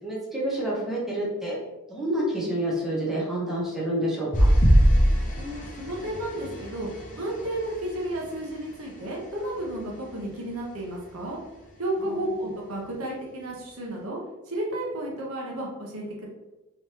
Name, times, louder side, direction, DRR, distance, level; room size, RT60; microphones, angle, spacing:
voice 1, 0.0-1.5 1.9-4.5 12.0-12.5, right 1 dB, ahead, -6 dB, 0.9 m, -29 dB
sound 1, 4.3-9.0 9.6-9.9 10.2-10.3, equal, 35° left, 0.7 m, -23 dB
voice 2, 5.4-6.9 7.2-11.4 11.8-14.2 14.5-16.3, right 1 dB, 70° right, -2 dB, 0.9 m, -32 dB
3.5 x 3.0 x 2.9 m, 1.0 s
head